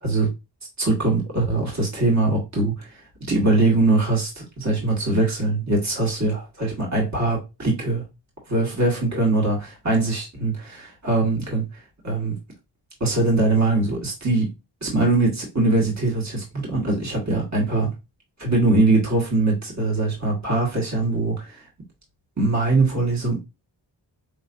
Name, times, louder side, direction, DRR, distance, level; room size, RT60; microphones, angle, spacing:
voice 1, 0.0-0.3 0.8-8.0 8.5-12.4 13.0-14.5 14.8-17.9 18.4-21.7 22.4-23.4, right 2 dB, 40° right, 1.8 m, -22 dB
5.0 x 3.1 x 2.5 m
wide cardioid pair, 90°, 44 cm